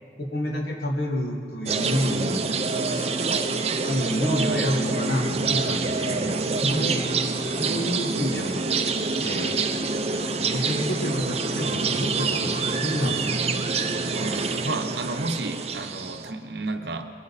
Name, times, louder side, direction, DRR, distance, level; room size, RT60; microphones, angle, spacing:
voice 1, 0.2-2.4 2.9-3.2 3.9-7.0 7.4-8.7 9.2-9.7 10.5-13.3, equal, 60° left, 1 dB, 1.7 m, -29 dB
sound 1, 1.7-16.3, right 4 dB, 35° right, 0.7 m, -26 dB
voice 2, 14.1-17.1, right 2 dB, 60° right, 6 dB, 0.9 m, -32 dB
21.0 x 15.5 x 4.2 m, 2.4 s
head